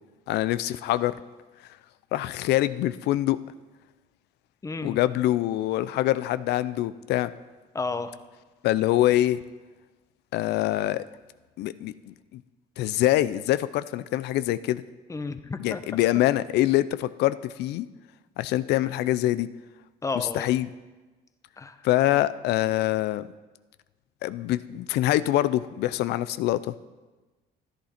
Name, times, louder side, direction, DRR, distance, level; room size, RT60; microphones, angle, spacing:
voice 1, 0.3-1.1 2.1-3.4 4.8-7.3 8.6-9.4 10.3-11.0 11.6-12.4 12.8-14.8 15.6-17.9 18.4-19.5 20.2-20.7 21.8-23.3 24.2-26.7, left 14 dB, 80° left, 15 dB, 0.5 m, -24 dB
voice 2, 4.6-5.0 7.7-8.1 15.1-15.8 20.0-20.5 21.6-21.7, left 3 dB, 20° left, 10 dB, 0.8 m, -31 dB
14.0 x 10.0 x 4.3 m, 1.2 s
cardioid pair, 110°, 17 cm